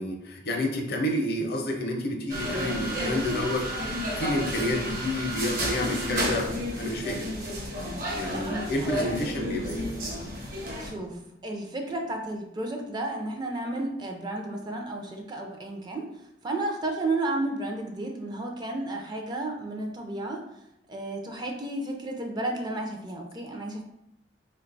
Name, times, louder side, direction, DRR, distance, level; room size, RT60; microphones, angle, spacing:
voice 1, 0.0-3.7 4.2-7.3 8.2-9.9, left 1 dB, 55° left, 2 dB, 0.6 m, -29 dB
sound 1, 2.3-10.9, equal, 50° right, 0.7 m, -31 dB
voice 2, 8.3-9.1 10.8-16.1 16.4-20.4 20.9-23.8, right 2 dB, 25° right, 2 dB, 0.4 m, -32 dB
3.5 x 2.2 x 3.8 m, 0.82 s
head